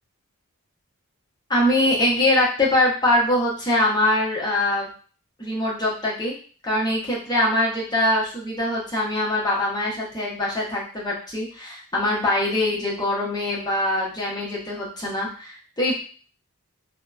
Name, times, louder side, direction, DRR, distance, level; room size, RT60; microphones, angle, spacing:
voice 1, 1.5-4.9 5.4-6.3 6.6-15.9, left 1 dB, 20° left, -4 dB, 0.6 m, -23 dB
2.7 x 2.0 x 2.3 m, 0.40 s
head